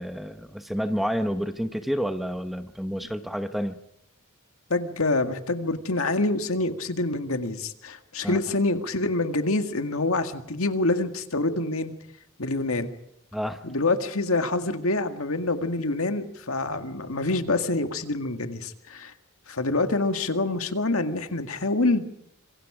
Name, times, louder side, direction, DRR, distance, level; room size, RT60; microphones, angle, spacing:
voice 1, 0.0-3.8 8.2-8.4 13.3-13.6, equal, ahead, 8 dB, 1.0 m, -29 dB
voice 2, 4.7-11.9 12.4-12.9 13.6-19.1 19.5-22.1, left 2 dB, 70° left, 7 dB, 2.0 m, -26 dB
26.5 x 24.0 x 5.0 m, 0.77 s
head